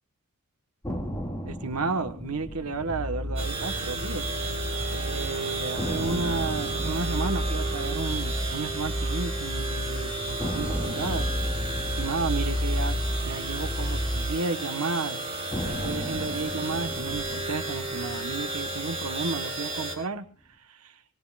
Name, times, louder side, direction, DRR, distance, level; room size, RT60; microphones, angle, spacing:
sound 1, 0.8-4.9 5.2-5.3 5.8-9.9 10.4-14.8 15.5-19.9, equal, 15° left, 2.2 m, -38 dB
voice 1, 1.4-4.3 4.9-11.6 12.0-13.0 13.2-15.2 15.6-20.2 20.7-21.0, right 3 dB, 85° right, 9 dB, 1.3 m, -32 dB
sound 2, 2.7-14.3, equal, 50° right, 7.7 m, -32 dB
sound 3, 3.4-20.0, right 3 dB, 25° right, 4.3 m, -33 dB
23.5 x 19.5 x 2.5 m, 0.39 s
head